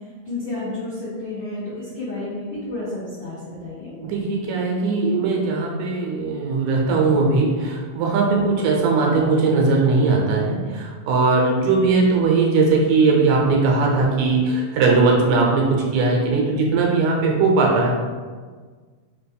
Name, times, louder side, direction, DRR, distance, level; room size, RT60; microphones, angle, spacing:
voice 1, 0.2-3.9, left 2 dB, 75° left, -10 dB, 1.0 m, -31 dB
voice 2, 4.0-17.9, right 3 dB, 90° right, -1 dB, 2.2 m, -19 dB
5.0 x 2.2 x 3.4 m, 1.5 s
omnidirectional pair, 3.5 m